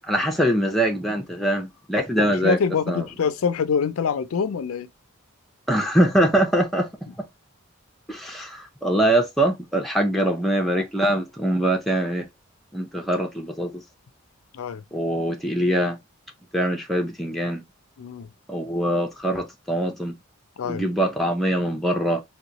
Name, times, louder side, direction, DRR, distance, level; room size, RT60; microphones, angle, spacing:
voice 1, 0.1-2.6 2.9-3.0 5.7-6.9 7.2-7.3 8.1-12.3 12.7-13.8 14.9-16.0 16.5-17.6 18.5-20.2 20.6-22.2, right 1 dB, ahead, 0.5 m, -23 dB
voice 2, 2.2-4.9 14.5-14.8 18.0-18.3 20.6-20.8, left 6 dB, 80° left, 0.4 m, -25 dB
3.8 x 2.3 x 2.8 m
head